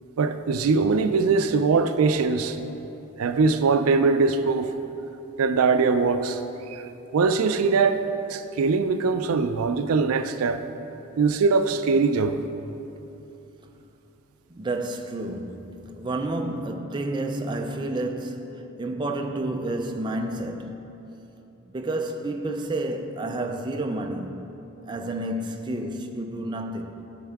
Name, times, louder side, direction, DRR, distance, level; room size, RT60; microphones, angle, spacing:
voice 1, 0.2-2.6 3.2-4.7 5.4-6.4 6.7-6.8 7.1-8.0 8.3-10.6 11.2-12.4, right 4 dB, 90° right, 0.4 m, -22 dB
voice 2, 14.5-20.9 21.6-24.5 24.9-27.2, right 1 dB, 20° right, 0.4 m, -30 dB
12.5 x 5.4 x 3.5 m
head